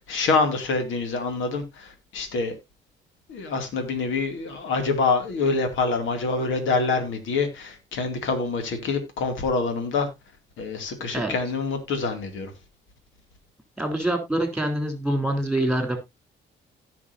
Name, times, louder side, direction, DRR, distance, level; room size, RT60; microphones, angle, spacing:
voice 1, 0.0-2.6 3.3-10.1 10.6-12.5, left 4 dB, 80° left, 2.5 m, -26 dB
voice 2, 13.8-16.0, right 1 dB, ahead, 3.7 m, -25 dB
17.5 x 6.0 x 2.7 m
cardioid pair, 90°, 20 cm